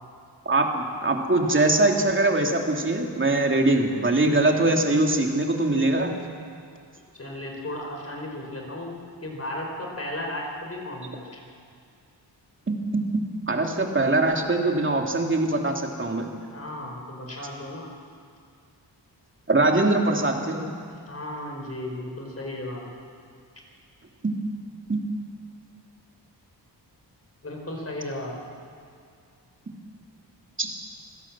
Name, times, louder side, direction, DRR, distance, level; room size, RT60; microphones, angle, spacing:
voice 1, 0.4-6.1 12.7-13.0 13.5-16.3 19.5-20.7 24.2-24.3 24.9-25.0 30.6-30.7, right 2 dB, 25° right, 2 dB, 2.8 m, -22 dB
voice 2, 7.1-11.4 16.5-17.9 21.1-22.9 27.4-28.4, left 1 dB, 35° left, 1 dB, 4.9 m, -35 dB
27.0 x 16.5 x 7.4 m, 2.3 s
wide cardioid pair, 100°, 43 cm